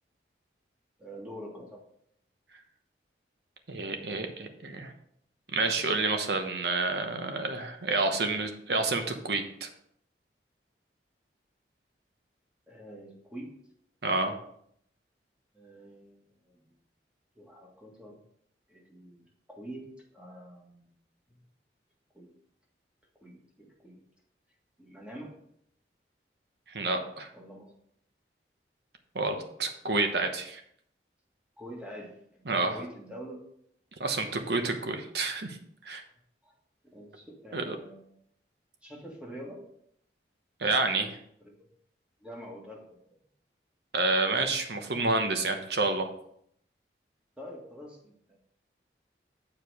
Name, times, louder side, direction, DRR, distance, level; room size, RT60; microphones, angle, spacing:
voice 1, 1.0-1.8 12.7-13.5 15.5-16.7 17.4-18.2 18.7-20.9 21.3-21.4 22.1-22.3 23.2-24.0 24.8-25.3 27.3-27.7 31.6-33.4 34.3-34.6 36.4-36.5 36.8-38.2 38.8-39.6 41.4-41.7 42.2-43.0 47.4-48.4, equal, 5° right, -2 dB, 1.7 m, -46 dB
voice 2, 3.7-4.9 5.5-9.7 14.0-14.4 26.7-27.3 29.1-30.6 32.5-32.8 34.0-35.6 35.8-36.0 37.5-37.7 40.6-41.2 43.9-46.1, right 3 dB, 70° right, 5 dB, 1.0 m, -29 dB
7.6 x 4.9 x 4.8 m, 0.70 s
head